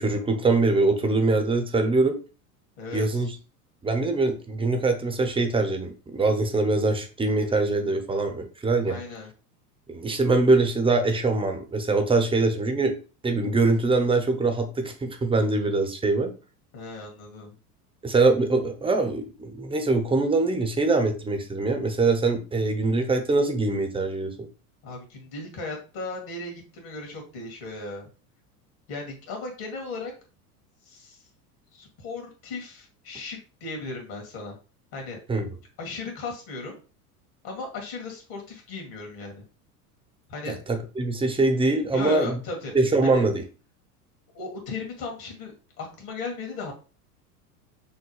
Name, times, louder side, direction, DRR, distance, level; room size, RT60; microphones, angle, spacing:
voice 1, 0.0-2.2 2.9-3.3 3.8-9.0 9.9-13.0 13.2-16.3 18.0-24.5 35.3-35.5 40.5-42.4 42.7-43.4, right 3 dB, 10° right, 6 dB, 0.7 m, -23 dB
voice 2, 2.8-3.3 8.9-9.3 16.7-17.6 24.8-28.1 28.9-30.1 30.9-31.2 31.7-34.6 34.9-35.2 35.8-36.7 37.4-39.4 40.3-40.6 41.9-42.8 43.0-43.2 44.3-46.7, left 3 dB, 50° left, 1 dB, 2.1 m, -36 dB
6.3 x 2.2 x 3.1 m, 0.34 s
hypercardioid pair, 85°, 46 cm